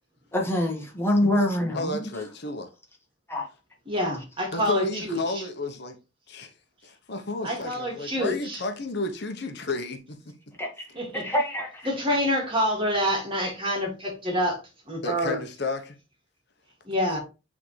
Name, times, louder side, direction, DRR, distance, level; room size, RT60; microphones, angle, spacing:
voice 1, 0.3-2.1 3.3-3.5 10.6-10.9 11.1-11.9, left 1 dB, 15° left, 1.6 m, -25 dB
voice 2, 1.7-2.7 4.5-6.0 6.3-6.5 6.8-10.2 15.0-16.0, left 2 dB, 65° left, 1.0 m, -32 dB
voice 3, 3.9-5.5 7.4-8.6 10.9-11.3 11.8-14.6 14.9-15.4 16.8-17.2, equal, 30° right, 2.3 m, -27 dB
8.4 x 3.6 x 3.2 m
head